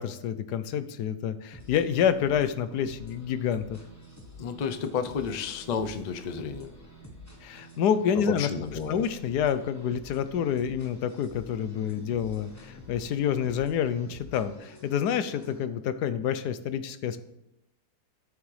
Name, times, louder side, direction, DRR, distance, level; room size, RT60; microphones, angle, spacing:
voice 1, 0.0-3.8 7.4-8.5 8.9-17.2, left 8 dB, 85° left, 12 dB, 1.2 m, -28 dB
sound 1, 1.5-15.6, left 1 dB, 10° left, 1.0 m, -49 dB
voice 2, 4.4-6.7 8.1-9.0, left 6 dB, 65° left, 8 dB, 0.4 m, -31 dB
12.5 x 7.0 x 3.3 m, 0.82 s
omnidirectional pair, 1.7 m